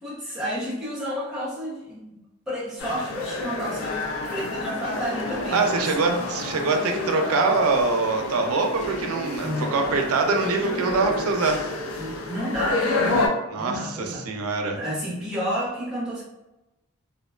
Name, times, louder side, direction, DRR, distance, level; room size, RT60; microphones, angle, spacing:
voice 1, 0.0-2.2 2.5-4.0 4.3-6.2 9.4-9.7 12.0-13.3 13.6-14.3 14.8-16.2, equal, 5° right, -7 dB, 0.7 m, -31 dB
sound 1, 2.8-13.3, left 2 dB, 80° left, 0.5 m, -29 dB
voice 2, 5.5-11.6 13.5-14.8, right 3 dB, 85° right, 3 dB, 0.4 m, -24 dB
2.5 x 2.1 x 2.3 m, 0.98 s
head